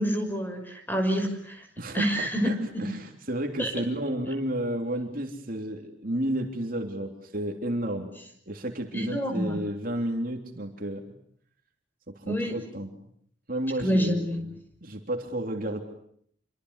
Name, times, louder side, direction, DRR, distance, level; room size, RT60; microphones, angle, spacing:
voice 1, 0.0-1.6 1.9-2.5 3.6-3.8 8.9-9.6 12.3-12.6 13.8-14.4, equal, 10° left, 5 dB, 5.9 m, -27 dB
voice 2, 1.8-8.1 8.5-11.0 12.1-12.9 13.5-14.5 14.8-15.8, right 1 dB, 45° right, 3 dB, 3.3 m, -32 dB
28.5 x 24.5 x 8.3 m, 0.67 s
head